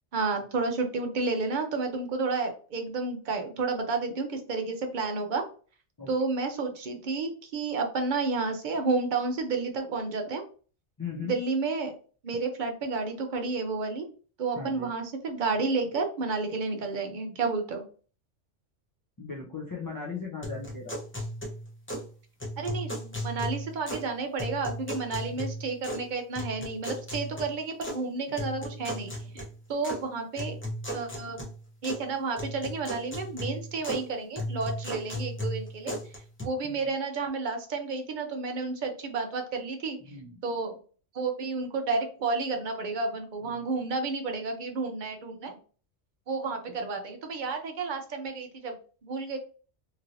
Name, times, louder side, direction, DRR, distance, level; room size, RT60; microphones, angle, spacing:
voice 1, 0.1-5.4 6.1-10.4 11.2-11.9 12.2-14.1 14.4-17.8 22.6-30.6 30.9-31.4 31.8-40.1 40.4-40.8 41.1-45.5 46.3-49.4, right 4 dB, 50° right, 4 dB, 0.7 m, -31 dB
voice 2, 11.0-11.4 14.5-14.9 19.2-21.0 36.6-36.8 40.1-40.4 43.4-43.7, left 5 dB, 35° left, -4 dB, 0.3 m, -38 dB
sound 1, 20.4-22.1 22.4-24.1 24.4-26.1 26.4-28.0 28.4-30.0 30.4-32.1 32.4-34.1 34.4-36.4, equal, 10° left, 0.7 m, -36 dB
3.1 x 2.8 x 2.6 m, 0.39 s
omnidirectional pair, 1.2 m